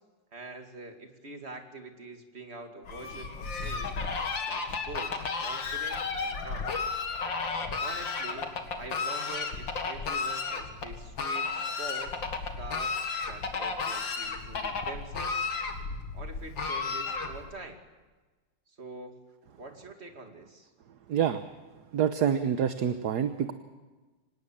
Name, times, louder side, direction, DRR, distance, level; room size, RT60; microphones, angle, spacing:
voice 1, 0.3-4.0 4.5-5.1 5.4-6.7 7.6-15.5 16.1-17.8 18.7-19.2 19.6-20.7, right 3 dB, 35° right, 4 dB, 2.6 m, -45 dB
Fowl, 2.8-17.6, left 4 dB, 90° left, 2.7 m, -33 dB
voice 2, 21.1-21.4 21.9-23.5, right 8 dB, 65° right, 9 dB, 1.4 m, -27 dB
25.5 x 19.0 x 7.4 m, 1.3 s
omnidirectional pair, 2.0 m